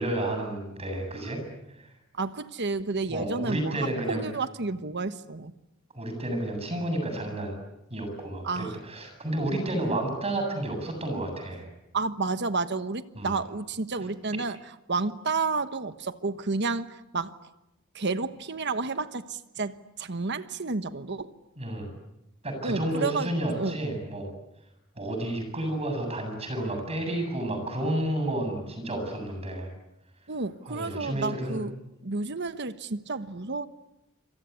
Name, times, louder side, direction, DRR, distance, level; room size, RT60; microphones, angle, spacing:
voice 1, 0.0-1.4 1.8-1.9 3.1-4.2 5.9-7.6 7.9-11.7 13.1-13.3 21.6-21.9 22.4-24.3 25.0-29.7 30.7-31.6, right 1 dB, 30° right, 5 dB, 7.9 m, -31 dB
voice 2, 2.2-3.8 4.1-5.5 8.4-8.7 11.9-14.6 14.9-17.3 17.9-21.3 22.6-23.8 30.3-31.7 32.0-33.7, right 3 dB, 55° right, 11 dB, 1.2 m, -31 dB
26.5 x 26.5 x 8.3 m, 0.89 s
head